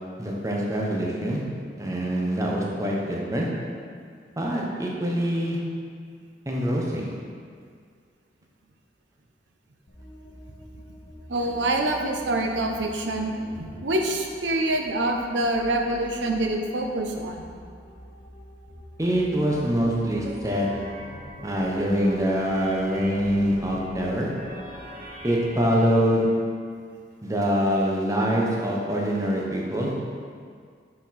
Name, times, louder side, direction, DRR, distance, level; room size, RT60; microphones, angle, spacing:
voice 1, 0.2-1.4 1.8-3.5 4.4-5.6 6.5-7.1 19.0-20.7 21.4-24.3 25.2-26.3 27.2-29.9, equal, 20° right, -3 dB, 0.8 m, -24 dB
sound 1, 9.9-25.0, equal, 70° left, 1.1 m, -47 dB
voice 2, 11.3-17.5, right 1 dB, 90° right, 2 dB, 0.7 m, -26 dB
sound 2, 20.0-26.3, equal, 50° right, 0.8 m, -41 dB
6.3 x 4.3 x 4.1 m, 2.1 s
head